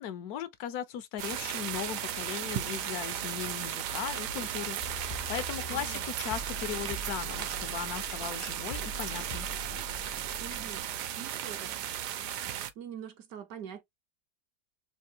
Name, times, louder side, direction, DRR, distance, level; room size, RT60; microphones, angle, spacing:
voice 1, 0.0-9.5, left 9 dB, 75° left, 1.0 m, -38 dB
sound 1, 1.2-12.7, right 10 dB, 90° right, 1.2 m, -36 dB
sound 2, 4.8-10.8, left 1 dB, 50° left, 0.6 m, -43 dB
voice 2, 5.7-6.0 10.4-10.9 11.2-12.0 12.8-13.8, right 9 dB, 70° right, 1.0 m, -44 dB
3.4 x 2.5 x 2.7 m
omnidirectional pair, 1.7 m